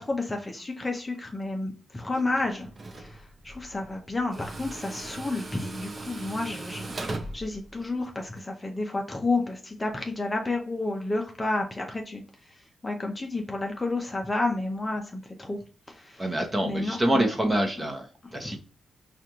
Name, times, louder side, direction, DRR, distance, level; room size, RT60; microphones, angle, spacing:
voice 1, 0.0-2.7 3.0-6.9 7.3-12.2 12.8-15.6 15.9-17.3 18.2-18.6, left 2 dB, 20° left, 2 dB, 0.6 m, -31 dB
Tools, 2.1-8.4, right 2 dB, 35° right, 0.5 m, -40 dB
voice 2, 16.2-18.1 18.3-18.6, right 1 dB, 20° right, 4 dB, 0.9 m, -26 dB
4.9 x 2.5 x 2.9 m, 0.37 s
cardioid pair, 95°, 0 cm